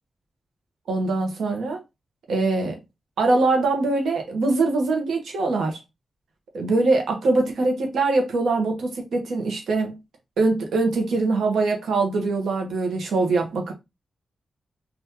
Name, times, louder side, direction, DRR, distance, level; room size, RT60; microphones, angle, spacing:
voice 1, 0.9-1.8 2.3-2.8 3.2-5.8 6.5-10.0 10.4-13.7, right 3 dB, 85° right, 1.0 m, -23 dB
3.6 x 2.6 x 2.8 m
wide cardioid pair, 120°, 0 cm